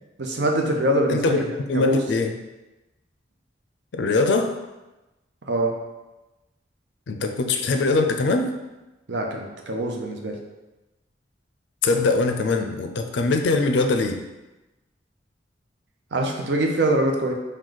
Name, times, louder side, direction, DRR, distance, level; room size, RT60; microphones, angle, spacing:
voice 1, 0.2-1.4 1.7-2.0 5.5-5.7 9.1-10.4 16.1-17.3, right 1 dB, 70° right, 1 dB, 0.6 m, -23 dB
voice 2, 1.1-2.3 3.9-4.5 7.1-8.5 11.8-14.2, left 3 dB, 80° left, 6 dB, 0.4 m, -22 dB
4.7 x 2.2 x 3.9 m, 1.1 s
head